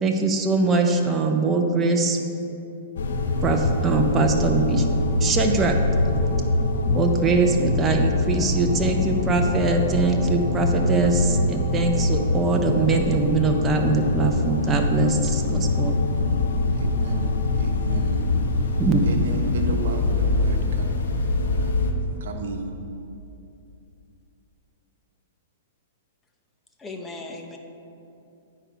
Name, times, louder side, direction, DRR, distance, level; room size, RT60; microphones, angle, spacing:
voice 1, 0.0-2.2 3.4-4.9 5.2-5.7 6.1-6.2 6.9-16.0 18.8-19.3, right 3 dB, 20° right, 3 dB, 0.7 m, -22 dB
sound 1, 3.0-21.9, left 2 dB, 75° left, 0.9 m, -24 dB
voice 2, 16.8-21.0 21.5-21.9 22.2-22.8, right 3 dB, 70° right, 3 dB, 1.1 m, -35 dB
voice 3, 26.8-27.6, left 2 dB, 15° left, 3 dB, 0.9 m, -37 dB
10.0 x 4.6 x 5.1 m, 2.7 s
hypercardioid pair, 130°, 0 cm